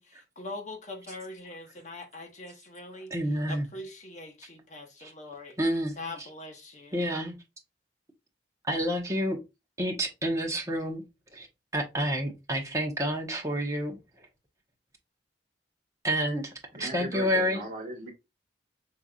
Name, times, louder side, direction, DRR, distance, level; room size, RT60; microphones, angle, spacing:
voice 1, 0.0-3.1 3.5-5.6 6.0-7.0, left 2 dB, 45° left, 1.1 m, -42 dB
voice 2, 3.1-3.7 5.0-5.1 5.6-5.9 6.9-7.3 8.7-9.4 9.8-11.0 11.3-11.5 11.7-14.0 16.0-16.5 16.8-17.6, equal, 20° right, 1.1 m, -29 dB
voice 3, 16.7-18.1, right 1 dB, 50° right, 1.8 m, -37 dB
5.5 x 3.4 x 2.4 m
head